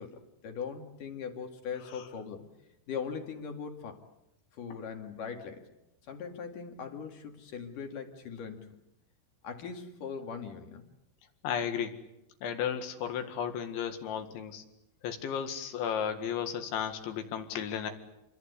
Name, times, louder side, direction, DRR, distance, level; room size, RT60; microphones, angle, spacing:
voice 1, 0.0-2.5 2.9-4.0 4.5-5.7 6.1-8.8 9.4-10.8, left 6 dB, 50° left, 5 dB, 3.1 m, -40 dB
voice 2, 11.4-11.9 12.4-14.6 15.0-17.9, left 8 dB, 70° left, 7 dB, 4.1 m, -34 dB
28.0 x 22.5 x 8.3 m, 0.90 s
omnidirectional pair, 5.6 m